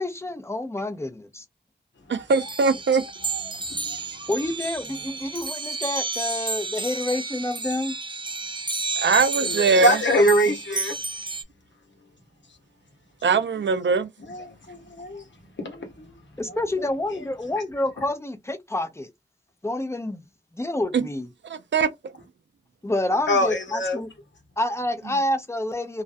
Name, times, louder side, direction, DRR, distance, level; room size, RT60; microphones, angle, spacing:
voice 1, 0.0-1.4 4.3-7.9 16.4-19.1 19.6-20.2 20.5-21.3 22.8-24.1 24.6-26.0, left 1 dB, 15° left, 0.6 m, -28 dB
voice 2, 2.1-3.0 9.0-10.0 10.5-10.6 13.2-14.1 20.9-21.1 21.5-21.9, right 5 dB, 80° right, 0.4 m, -21 dB
sound 1, 2.3-11.4, right 4 dB, 25° right, 0.4 m, -31 dB
voice 3, 3.0-3.5 4.2-4.3 9.1-10.9 13.2-13.3 14.2-15.2 15.6-16.1 16.5-16.9 17.5-17.6 23.3-24.0, equal, 80° left, 0.9 m, -25 dB
2.4 x 2.1 x 2.5 m
wide cardioid pair, 45°, 19 cm